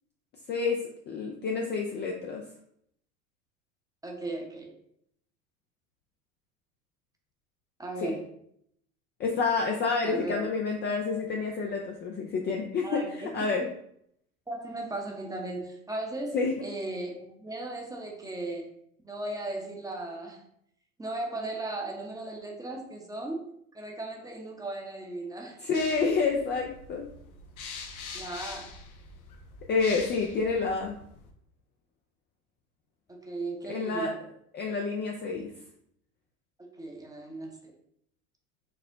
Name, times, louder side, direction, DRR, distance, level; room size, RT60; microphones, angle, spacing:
voice 1, 0.5-2.4 8.0-8.1 9.2-13.6 16.3-16.6 25.6-27.1 29.7-31.0 33.7-34.1 34.5-35.5, left 4 dB, 25° left, 1 dB, 0.4 m, -29 dB
voice 2, 4.0-4.7 7.8-8.3 10.0-10.5 12.8-13.7 14.5-18.7 19.0-20.4 21.0-25.6 28.1-28.7 33.1-34.2 36.6-37.7, right 2 dB, 10° right, 1 dB, 0.7 m, -37 dB
sound 1, 25.7-31.3, left 4 dB, 80° left, 0.7 m, -44 dB
4.4 x 2.1 x 3.8 m, 0.71 s
hypercardioid pair, 90°, 43 cm